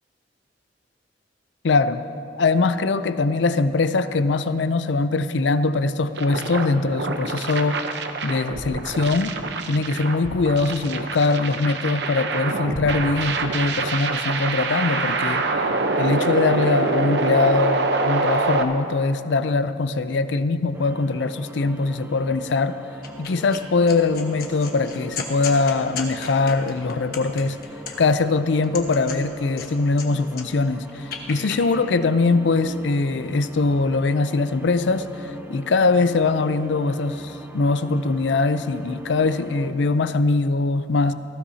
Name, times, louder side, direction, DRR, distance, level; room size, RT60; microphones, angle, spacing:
voice 1, 1.6-2.0 2.4-7.8 8.2-9.3 9.7-15.5 16.0-22.8 23.2-27.6 28.0-41.1, left 3 dB, 70° left, 12 dB, 0.5 m, -22 dB
sound 1, 6.2-18.6, right 3 dB, 65° right, 0.8 m, -25 dB
sound 2, 20.7-39.7, equal, 10° right, 0.7 m, -41 dB
sound 3, 23.0-23.6 23.9-28.2 28.6-30.1 30.3-31.6, left 6 dB, 55° left, 1.3 m, -35 dB
18.0 x 15.5 x 2.8 m, 2.8 s
head